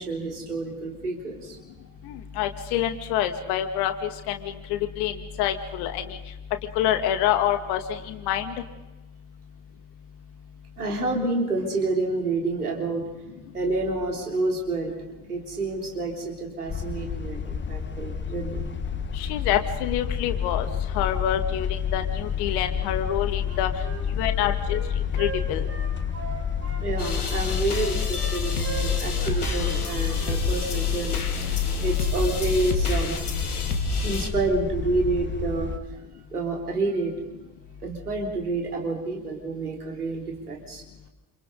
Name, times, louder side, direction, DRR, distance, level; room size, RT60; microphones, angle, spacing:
voice 1, 0.0-1.6 10.8-13.0 13.5-14.9 15.3-18.7 22.7-22.8 24.2-24.4 26.8-31.2 31.8-33.2 34.0-35.7 36.3-37.2 37.8-40.8, right 3 dB, 85° right, 0 dB, 3.7 m, -28 dB
voice 2, 2.0-6.2 6.7-8.5 19.1-20.7 20.9-23.7 24.1-24.8 25.1-25.6, left 11 dB, 60° left, 7 dB, 2.4 m, -27 dB
sound 1, 16.7-35.8, left 8 dB, 25° left, 1.5 m, -29 dB
Wind instrument woodwind instrument, 23.4-26.8 27.3-29.3 29.6-29.8 30.1-30.4 30.7-30.9, right 5 dB, 35° right, 6.0 m, -39 dB
sound 2, 27.0-34.3, left 4 dB, 85° left, 1.7 m, -29 dB
29.0 x 27.5 x 4.1 m, 1.0 s
figure-of-eight pair, 55°, 44 cm